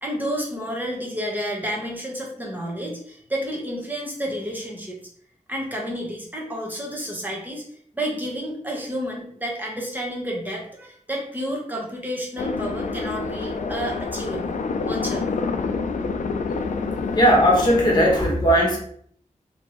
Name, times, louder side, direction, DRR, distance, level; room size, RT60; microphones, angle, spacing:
voice 1, 0.0-5.0 5.5-7.7 7.9-14.5 14.9-15.4, equal, 15° right, -2 dB, 1.0 m, -30 dB
sound 1, 12.4-18.2, left 4 dB, 65° left, 0.4 m, -27 dB
voice 2, 16.9-18.8, equal, 30° left, -2 dB, 1.2 m, -18 dB
3.5 x 2.9 x 3.0 m, 0.62 s
wide cardioid pair, 105°, 13 cm